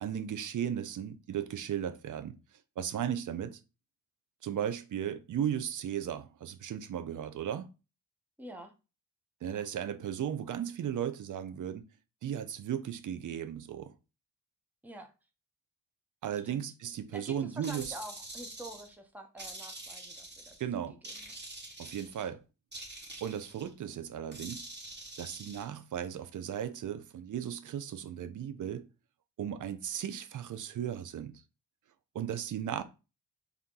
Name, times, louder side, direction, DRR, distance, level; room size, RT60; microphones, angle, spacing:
voice 1, 0.0-2.4 2.8-3.6 4.4-7.7 9.4-11.8 12.2-13.9 16.2-17.9 20.6-21.0 21.8-22.4 23.2-24.7 25.2-28.9 29.4-31.4 32.1-32.8, right 9 dB, 50° right, 0.6 m, -36 dB
voice 2, 8.4-8.7 9.4-9.7 14.8-15.1 16.4-16.6 17.1-21.3, equal, 5° right, 0.9 m, -47 dB
sound 1, 17.6-18.9 19.4-20.6 21.0-22.3 22.7-23.7 24.3-25.6, right 2 dB, 25° right, 1.4 m, -45 dB
3.6 x 2.8 x 3.7 m
supercardioid pair, 60°, 39 cm